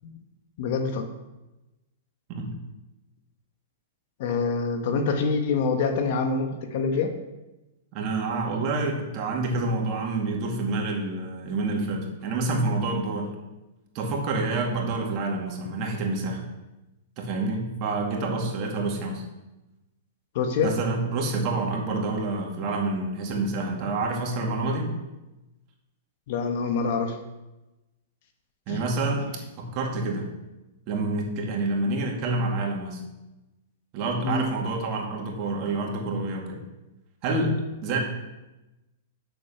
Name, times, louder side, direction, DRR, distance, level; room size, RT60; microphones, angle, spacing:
voice 1, 0.6-1.1 4.2-7.1 20.3-20.7 26.3-27.2 28.7-28.8 34.2-34.5, left 4 dB, 55° left, 6 dB, 1.3 m, -26 dB
voice 2, 7.9-13.3 13.9-16.4 17.2-19.2 20.6-24.9 28.7-30.3 30.9-33.0 33.9-36.6 37.2-38.0, right 2 dB, 40° right, 0 dB, 2.4 m, -28 dB
7.7 x 6.9 x 5.9 m, 1.0 s
hypercardioid pair, 135°, 0 cm